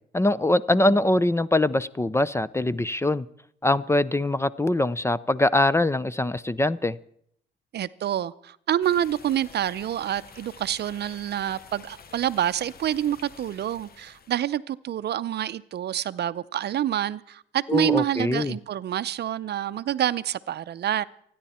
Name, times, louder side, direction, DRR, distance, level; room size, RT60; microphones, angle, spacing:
voice 1, 0.1-3.3 3.6-7.0 17.7-18.5, left 1 dB, 15° left, 0.5 m, -23 dB
voice 2, 7.7-21.0, right 11 dB, 55° right, 0.6 m, -27 dB
sound 1, 8.8-14.4, left 5 dB, 50° left, 1.3 m, -49 dB
30.0 x 10.0 x 4.3 m
cardioid pair, 90°, 20 cm